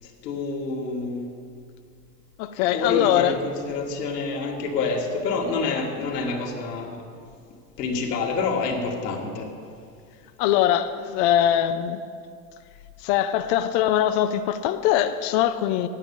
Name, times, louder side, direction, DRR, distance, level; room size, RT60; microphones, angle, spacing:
voice 1, 0.0-1.3 2.7-7.0 7.8-9.5, left 4 dB, 80° left, 2.3 m, -27 dB
voice 2, 2.4-3.3 10.4-12.0 13.0-15.9, left 11 dB, 35° left, 0.4 m, -22 dB
9.4 x 9.1 x 7.0 m
supercardioid pair, 125°, 47 cm